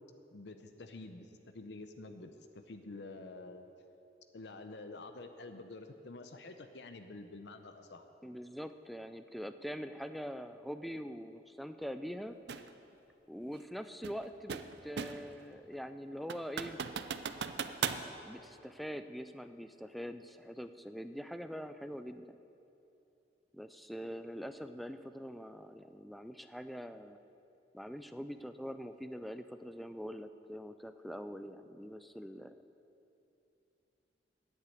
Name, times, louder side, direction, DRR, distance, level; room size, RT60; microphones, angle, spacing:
voice 1, 0.3-3.7 4.3-8.0, left 2 dB, 75° left, 7 dB, 0.7 m, -48 dB
voice 2, 8.2-12.4 13.3-16.8 18.1-22.4 23.5-27.2 27.7-32.6, equal, ahead, 9 dB, 0.3 m, -44 dB
sound 1, 12.5-12.7 14.0-15.3 15.7-15.8 16.3-18.1, right 6 dB, 70° right, 0.5 m, -38 dB
9.6 x 8.1 x 8.5 m, 2.8 s
head